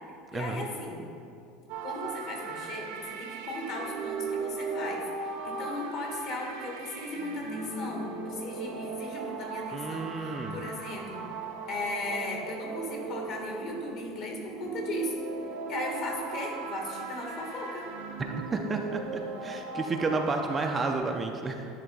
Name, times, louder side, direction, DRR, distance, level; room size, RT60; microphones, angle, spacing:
voice 1, 0.3-1.1 1.8-11.3 11.7-15.2 15.7-17.9, left 2 dB, 45° left, 0 dB, 1.4 m, -37 dB
sound 1, 1.7-21.0, right 4 dB, 80° right, 0.9 m, -38 dB
voice 2, 9.7-10.6 18.5-21.7, right 3 dB, 20° right, 3 dB, 0.4 m, -31 dB
10.0 x 3.4 x 5.2 m, 2.7 s
supercardioid pair, 140°, 0 cm